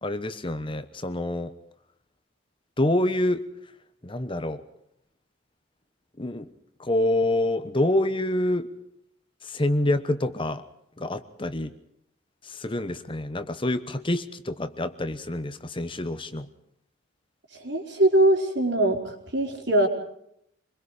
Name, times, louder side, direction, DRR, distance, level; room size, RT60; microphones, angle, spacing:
voice 1, 0.0-1.5 2.8-3.4 4.0-4.6 6.2-6.5 6.8-8.7 9.4-10.6 11.0-11.7 12.4-16.5, left 1 dB, 25° left, 11 dB, 1.1 m, -27 dB
voice 2, 17.5-19.9, right 1 dB, 60° right, 3 dB, 4.8 m, -22 dB
26.5 x 22.0 x 5.0 m, 0.73 s
head